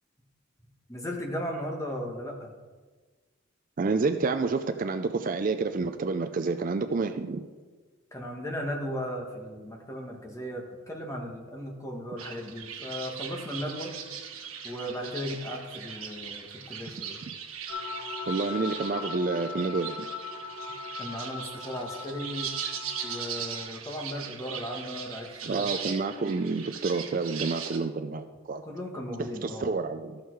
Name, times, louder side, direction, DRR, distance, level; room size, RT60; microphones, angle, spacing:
voice 1, 0.9-2.5 8.1-13.9 14.6-17.2 21.0-22.5 23.0-25.7 28.6-29.7, equal, 15° left, 0 dB, 1.4 m, -36 dB
voice 2, 3.8-7.4 18.3-20.1 25.5-28.6 29.2-30.2, right 4 dB, 40° right, 8 dB, 0.4 m, -29 dB
sound 1, 12.2-27.8, right 7 dB, 85° right, 1.3 m, -39 dB
sound 2, 17.7-23.6, left 5 dB, 55° left, 2.0 m, -39 dB
13.5 x 6.5 x 4.6 m, 1.4 s
head